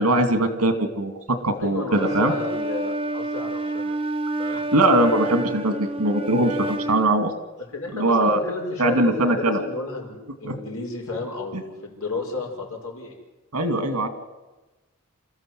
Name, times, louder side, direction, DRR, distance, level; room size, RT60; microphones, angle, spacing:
voice 1, 0.0-2.3 4.5-7.3 7.9-8.4 8.8-9.6 10.4-10.5 13.5-14.1, right 1 dB, 80° right, 8 dB, 2.6 m, -21 dB
voice 2, 1.6-4.0 4.4-4.6 7.7-13.2, left 3 dB, 65° left, 0 dB, 5.6 m, -32 dB
Wind instrument woodwind instrument, 1.9-7.1, right 1 dB, 25° right, 1.0 m, -28 dB
27.0 x 14.0 x 7.9 m, 1.1 s
head